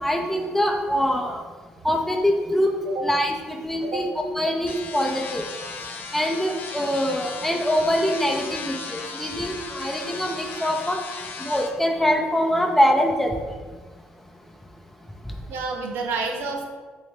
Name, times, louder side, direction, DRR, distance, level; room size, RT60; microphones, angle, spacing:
voice 1, 0.0-1.4 1.8-2.7 3.0-4.1 4.4-5.4 6.1-11.0 11.4-13.3, equal, 5° left, 2 dB, 0.5 m, -23 dB
sound 1, 4.7-11.7, left 4 dB, 55° left, 0.5 m, -36 dB
voice 2, 15.5-16.6, right 3 dB, 70° right, 2 dB, 0.6 m, -29 dB
3.2 x 3.1 x 3.2 m, 1.4 s
supercardioid pair, 80°, 4 cm